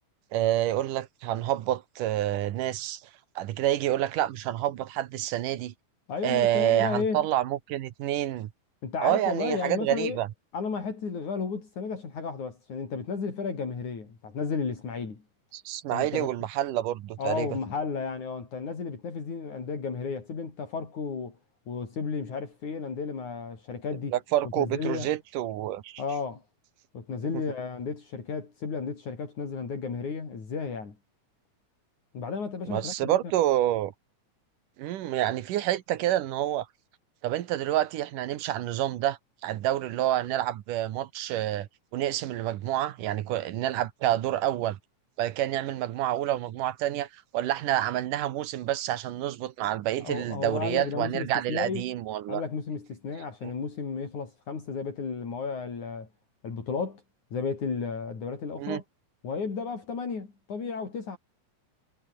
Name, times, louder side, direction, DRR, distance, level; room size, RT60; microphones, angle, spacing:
voice 1, 0.3-3.0 3.4-5.7 6.2-8.5 9.0-10.3 15.5-17.5 24.1-26.0 32.7-33.9 34.8-36.7 37.2-41.7 41.9-44.8 45.2-47.1 47.3-52.4 53.4-53.5 58.6-58.8, right 13 dB, 90° right, 2.8 m, -28 dB
voice 2, 6.1-7.3 8.8-10.2 10.5-15.2 15.9-16.4 17.2-21.4 21.7-24.2 24.6-25.1 26.0-26.4 26.9-31.0 32.1-33.2 50.0-51.9 52.3-56.1 56.4-57.0 57.3-58.8 59.2-61.2, left 5 dB, 65° left, 6.1 m, -33 dB
omnidirectional pair, 3.6 m